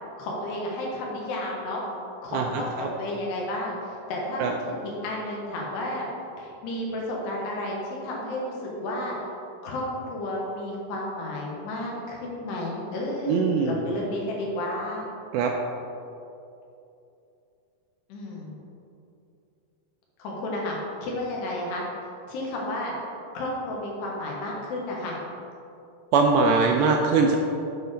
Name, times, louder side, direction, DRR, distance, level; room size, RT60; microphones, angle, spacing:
voice 1, 0.2-1.8 2.2-6.1 6.4-9.2 9.6-15.1 18.1-18.5 20.2-21.8 22.3-22.9 23.4-25.2, left 1 dB, 90° left, -2 dB, 3.4 m, -32 dB
voice 2, 13.3-13.7 15.3-15.5 26.1-27.4, right 4 dB, 85° right, 2 dB, 2.2 m, -21 dB
9.3 x 4.4 x 5.0 m, 2.7 s
omnidirectional pair, 4.7 m